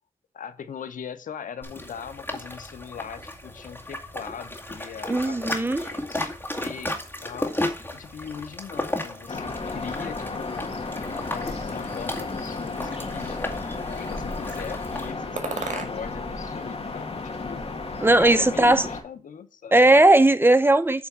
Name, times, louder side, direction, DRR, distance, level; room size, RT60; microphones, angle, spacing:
voice 1, 0.3-7.5 7.9-10.7 11.3-13.4 14.0-17.6 18.2-19.9, left 7 dB, 85° left, 0.8 m, -40 dB
sound 1, 1.6-15.1, left 1 dB, 15° left, 2.2 m, -34 dB
voice 2, 5.1-5.9 18.0-18.9 19.7-21.1, right 2 dB, 15° right, 0.7 m, -17 dB
sound 2, 9.3-19.0, left 3 dB, 50° left, 2.0 m, -33 dB
sound 3, 15.4-16.3 16.6-17.6, right 4 dB, 65° right, 1.8 m, -38 dB
8.7 x 3.5 x 6.7 m
cardioid pair, 65°, 13 cm